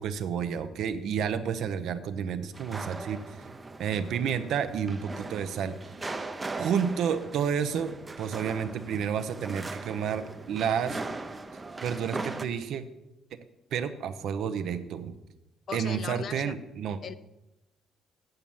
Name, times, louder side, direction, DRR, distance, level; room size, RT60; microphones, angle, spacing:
voice 1, 0.0-3.2 3.8-5.8 6.5-11.0 11.8-12.8 13.7-15.1 15.7-17.0, right 7 dB, 70° right, 11 dB, 0.8 m, -30 dB
sound 1, 2.5-12.5, right 3 dB, 20° right, 0.6 m, -39 dB
voice 2, 15.7-16.6 17.0-17.2, left 6 dB, 45° left, 14 dB, 0.5 m, -37 dB
7.9 x 7.4 x 7.0 m, 0.94 s
cardioid pair, 135°, 0 cm